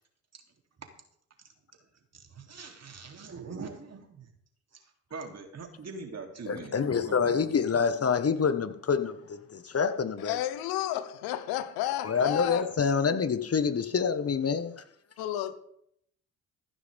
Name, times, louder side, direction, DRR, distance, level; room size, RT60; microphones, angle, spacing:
voice 1, 2.1-4.3 4.7-7.3, right 4 dB, 45° right, 3.2 m, -43 dB
voice 2, 6.5-10.4 12.0-14.8, left 6 dB, 40° left, 1.4 m, -27 dB
voice 3, 10.2-12.6 15.2-15.5, left 13 dB, 80° left, 1.2 m, -31 dB
15.0 x 11.0 x 3.6 m
hypercardioid pair, 50°, 36 cm